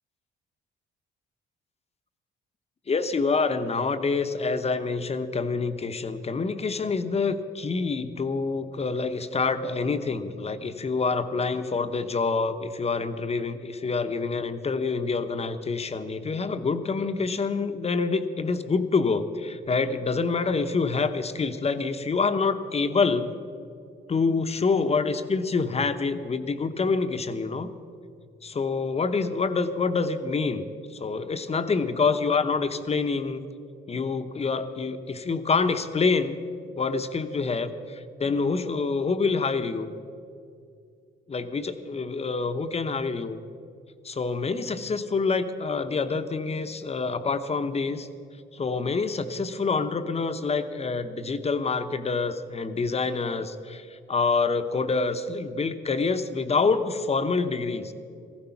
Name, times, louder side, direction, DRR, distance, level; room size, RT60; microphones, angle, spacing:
voice 1, 2.9-23.3 24.1-27.7 28.4-33.4 33.9-36.4 36.8-39.9 41.3-43.4 44.0-48.1 48.5-57.9, left 4 dB, 30° left, 9 dB, 0.9 m, -26 dB
15.0 x 13.0 x 5.8 m, 2.5 s
cardioid pair, 90°, 20 cm